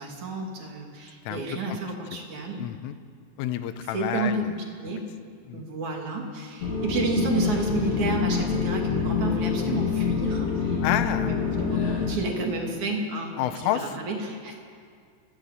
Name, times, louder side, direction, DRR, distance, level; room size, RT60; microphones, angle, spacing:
voice 1, 0.0-2.6 3.9-4.5 4.8-5.0 5.5-14.6, right 2 dB, 45° right, 1 dB, 3.4 m, -31 dB
voice 2, 2.6-2.9 3.4-4.5 5.5-5.6 10.8-11.3 13.4-14.0, left 12 dB, 80° left, 10 dB, 3.5 m, -29 dB
sound 1, 6.6-12.1, left 6 dB, 35° left, 4.0 m, -26 dB
28.5 x 16.5 x 8.3 m, 2.2 s
omnidirectional pair, 5.8 m